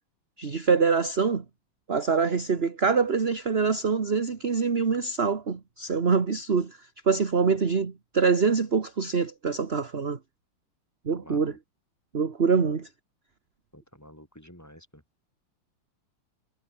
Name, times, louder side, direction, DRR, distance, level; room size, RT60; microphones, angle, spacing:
voice 1, 0.4-1.4 1.9-6.8 7.0-10.2 11.0-11.6 12.1-12.9, right 5 dB, 30° right, 1.7 m, -25 dB
voice 2, 11.2-11.6 12.7-12.8 13.7-15.0, equal, 5° left, 5.9 m, -49 dB
omnidirectional pair, 2.3 m